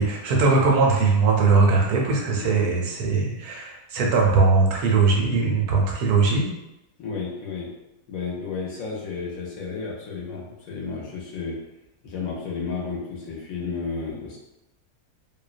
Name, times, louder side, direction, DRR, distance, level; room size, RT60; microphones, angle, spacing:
voice 1, 0.0-6.5, right 4 dB, 75° right, -1 dB, 1.0 m, -20 dB
voice 2, 7.0-7.7 8.1-11.6 12.0-14.4, left 4 dB, 70° left, -3 dB, 0.9 m, -32 dB
2.7 x 2.1 x 2.4 m, 0.91 s
omnidirectional pair, 1.7 m